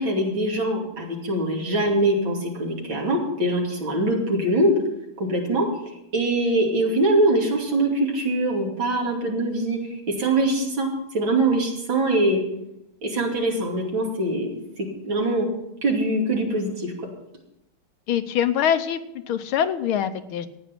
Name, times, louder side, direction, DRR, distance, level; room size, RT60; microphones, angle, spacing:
voice 1, 0.0-4.8 5.2-5.7 6.1-12.4 13.0-15.5 15.8-16.9, right 1 dB, 60° right, -1 dB, 3.5 m, -23 dB
voice 2, 18.1-19.0 19.3-20.5, left 9 dB, 75° left, 10 dB, 1.6 m, -23 dB
14.5 x 9.5 x 6.0 m, 0.85 s
omnidirectional pair, 2.4 m